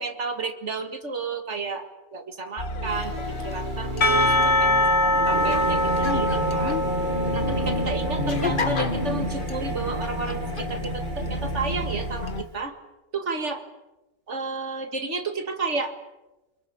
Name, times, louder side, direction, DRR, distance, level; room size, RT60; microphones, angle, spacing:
voice 1, 0.0-3.1 3.4-4.8 5.3-6.8 7.3-12.8 13.1-13.6 14.3-15.9, right 4 dB, 70° right, 7 dB, 2.2 m, -31 dB
sound 1, 2.6-12.4, left 2 dB, 45° left, 1.6 m, -30 dB
Singing / Musical instrument, 2.9-12.5, right 4 dB, 40° right, 1.7 m, -34 dB
Percussion / Church bell, 4.0-9.1, left 1 dB, 60° left, 1.6 m, -24 dB
26.0 x 22.5 x 8.7 m, 1.0 s
omnidirectional pair, 1.3 m